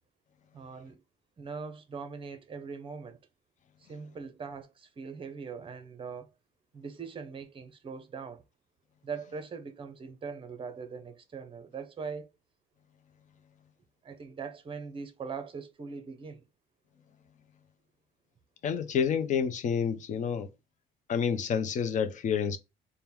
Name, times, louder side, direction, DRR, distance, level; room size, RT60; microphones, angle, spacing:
voice 1, 0.5-1.0 1.4-3.2 3.8-6.3 6.7-8.4 9.0-12.3 14.0-16.4, right 5 dB, 30° right, 0.8 m, -41 dB
voice 2, 18.6-20.5 21.1-22.6, left 7 dB, 45° left, 0.7 m, -29 dB
3.5 x 2.2 x 4.4 m
cardioid pair, 110°, 17 cm